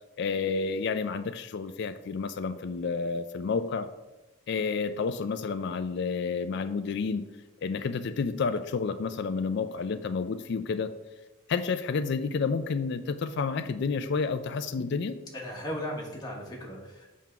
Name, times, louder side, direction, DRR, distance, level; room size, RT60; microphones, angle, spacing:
voice 1, 0.2-3.9 4.5-7.2 7.6-10.9 11.5-15.2, left 5 dB, 55° left, 11 dB, 0.4 m, -30 dB
voice 2, 15.3-17.1, equal, 20° left, -2 dB, 1.5 m, -36 dB
7.4 x 3.6 x 5.8 m, 1.1 s
head